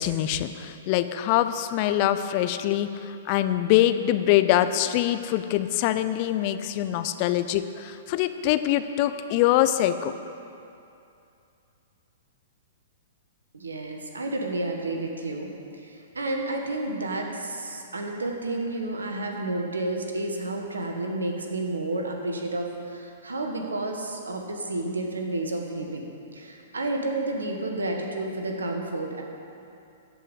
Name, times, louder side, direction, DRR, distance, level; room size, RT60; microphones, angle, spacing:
voice 1, 0.0-10.1, left 13 dB, 40° left, 11 dB, 0.6 m, -24 dB
voice 2, 13.5-15.5 15.8-26.1 26.3-29.2, right 2 dB, 80° right, 2 dB, 1.6 m, -31 dB
13.5 x 5.6 x 8.3 m, 2.6 s
figure-of-eight pair, 115°, 0 cm